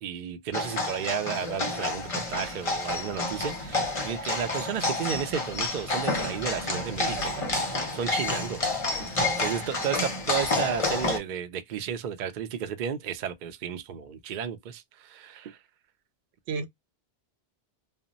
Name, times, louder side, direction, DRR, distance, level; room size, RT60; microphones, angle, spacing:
voice 1, 0.0-7.4 7.7-15.6, right 8 dB, 60° right, 0.6 m, -33 dB
sound 1, 0.5-11.2, left 2 dB, 40° left, 0.7 m, -29 dB
voice 2, 6.7-7.8 16.5-16.7, right 5 dB, 90° right, 0.8 m, -36 dB
2.1 x 2.1 x 3.7 m
omnidirectional pair, 1.1 m